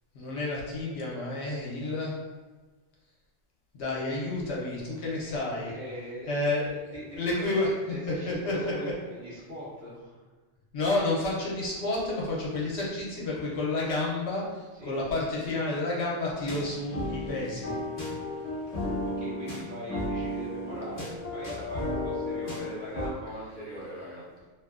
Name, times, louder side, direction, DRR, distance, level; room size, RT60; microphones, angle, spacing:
voice 1, 0.1-2.2 3.7-5.7 6.3-6.8 7.1-7.7 8.3-8.5 10.7-17.7, left 2 dB, 70° left, -4 dB, 0.9 m, -30 dB
voice 2, 5.1-6.3 6.7-10.2 14.7-15.0 18.7-24.3, equal, 45° right, -8 dB, 0.8 m, -41 dB
sound 1, 16.5-23.1, left 1 dB, 40° left, 0.7 m, -34 dB
2.6 x 2.4 x 2.4 m, 1.3 s
omnidirectional pair, 1.2 m